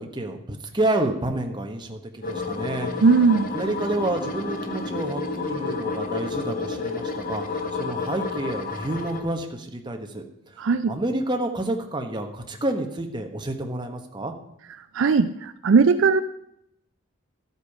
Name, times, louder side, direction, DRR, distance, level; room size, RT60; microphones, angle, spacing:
voice 1, 0.0-3.0 3.5-14.3, right 1 dB, 20° right, 3 dB, 1.2 m, -29 dB
sound 1, 2.2-9.2, left 3 dB, 40° left, 1.1 m, -30 dB
voice 2, 3.0-3.5 10.6-10.9 14.9-16.2, right 4 dB, 60° right, 11 dB, 0.4 m, -18 dB
12.5 x 8.3 x 4.9 m, 0.75 s
head